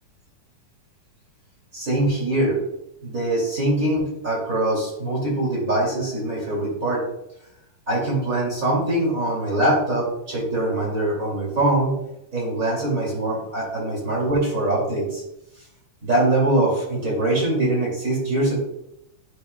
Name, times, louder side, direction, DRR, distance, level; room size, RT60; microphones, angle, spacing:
voice 1, 1.7-2.6 3.0-7.0 7.9-12.0 12.3-15.2 16.0-18.6, right 1 dB, 25° right, -4 dB, 2.6 m, -23 dB
10.5 x 6.6 x 2.3 m, 0.82 s
omnidirectional pair, 3.9 m